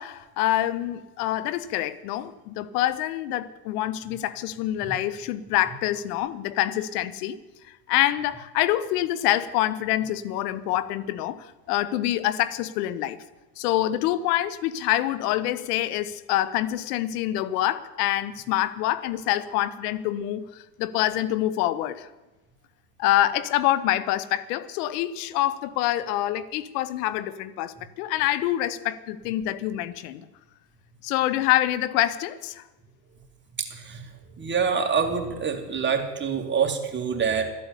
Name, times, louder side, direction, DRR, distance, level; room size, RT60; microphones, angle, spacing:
voice 1, 0.0-7.4 7.9-13.2 13.6-22.1 23.0-30.2 31.0-32.6, left 14 dB, 70° left, 17 dB, 1.0 m, -26 dB
voice 2, 33.6-34.1 34.4-37.5, right 6 dB, 25° right, 3 dB, 2.7 m, -26 dB
12.5 x 8.7 x 9.7 m, 1.1 s
hypercardioid pair, 95°, 48 cm